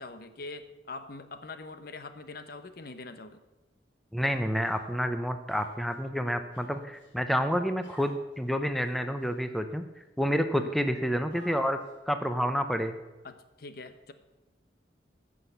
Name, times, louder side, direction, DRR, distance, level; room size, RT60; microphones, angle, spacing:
voice 1, 0.0-3.4 10.6-10.8 13.2-14.1, left 3 dB, 55° left, 10 dB, 1.0 m, -43 dB
voice 2, 4.1-9.8 10.2-11.8 12.1-13.0, equal, ahead, 8 dB, 0.7 m, -29 dB
Human voice, 4.2-4.8 5.5-5.9 6.5-7.1 7.8-8.2 8.8-9.2 9.9-10.0 11.3-11.9, left 1 dB, 85° left, 3.5 m, -53 dB
15.0 x 6.4 x 8.0 m, 1.1 s
head